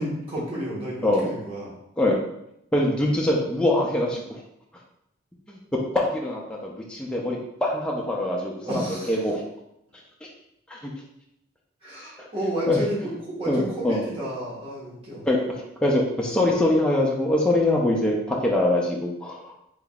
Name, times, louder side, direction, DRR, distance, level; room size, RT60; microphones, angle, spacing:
voice 1, 0.0-1.7 8.6-9.2 11.8-15.3, right 1 dB, 30° right, -7 dB, 1.4 m, -31 dB
voice 2, 2.7-4.4 5.5-9.4 10.7-10.8 12.2-12.3 12.7-12.8 13.5-14.0 15.3-19.5, left 1 dB, 5° left, -3 dB, 0.4 m, -24 dB
3.7 x 3.6 x 2.3 m, 0.79 s
head